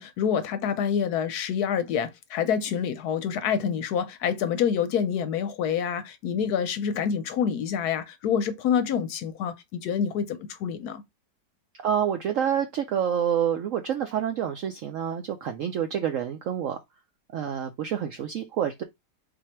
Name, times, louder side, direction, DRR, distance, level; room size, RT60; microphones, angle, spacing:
voice 1, 0.0-11.0, left 7 dB, 70° left, 1.0 m, -27 dB
voice 2, 11.8-16.8 17.3-18.8, right 9 dB, 75° right, 0.7 m, -28 dB
4.0 x 2.6 x 4.3 m
omnidirectional pair, 1.9 m